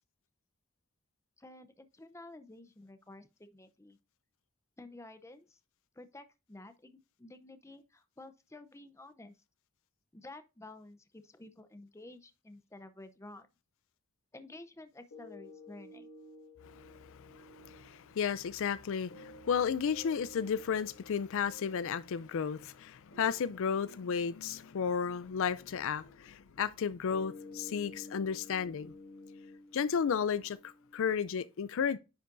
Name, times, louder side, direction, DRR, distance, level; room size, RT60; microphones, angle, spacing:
voice 1, 1.4-4.0 4.8-5.6 6.0-9.3 10.1-13.5 14.3-16.1, left 2 dB, 15° left, 0.6 m, -51 dB
sound 1, 15.1-31.1, left 2 dB, 85° left, 3.2 m, -54 dB
voice 2, 16.7-28.9 29.7-32.0, left 7 dB, 65° left, 0.4 m, -33 dB
10.0 x 5.3 x 2.6 m
head